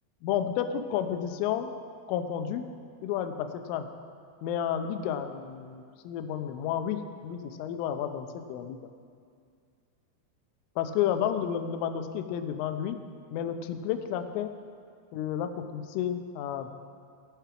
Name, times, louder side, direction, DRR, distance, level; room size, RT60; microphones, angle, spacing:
voice 1, 0.2-1.7 2.1-2.7 3.0-3.9 4.4-8.8 10.8-13.0 13.3-14.5 15.1-16.7, left 9 dB, 90° left, 7 dB, 3.4 m, -31 dB
18.0 x 9.2 x 5.9 m, 2.2 s
omnidirectional pair, 5.6 m